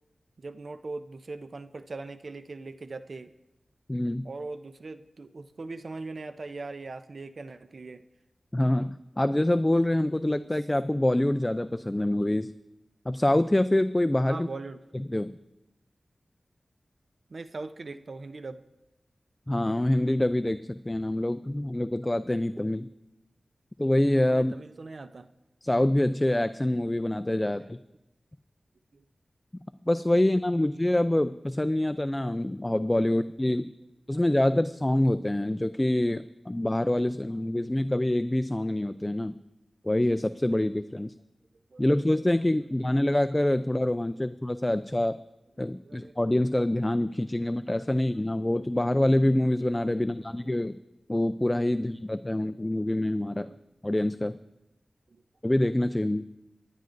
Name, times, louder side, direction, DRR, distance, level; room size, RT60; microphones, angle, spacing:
voice 1, 0.4-3.3 4.2-8.0 14.3-14.8 17.3-18.6 24.3-25.3 27.5-27.7 28.9-29.0 33.1-33.2 34.1-34.2 41.7-41.9 44.1-44.3 45.6-46.2 49.9-50.2 52.3-52.8 53.3-53.6 55.1-55.2, right 3 dB, 65° right, 10 dB, 0.5 m, -41 dB
voice 2, 3.9-4.3 8.5-12.5 13.1-14.5 15.1-15.3 19.5-22.9 23.8-24.5 25.6-27.8 29.8-33.7 34.1-39.3 39.8-41.1 41.8-45.2 45.6-50.8 51.1-53.5 53.8-54.4 55.4-56.2, left 1 dB, 20° left, 11 dB, 0.4 m, -26 dB
23.5 x 10.5 x 2.6 m, 0.95 s
wide cardioid pair, 55°, 0 cm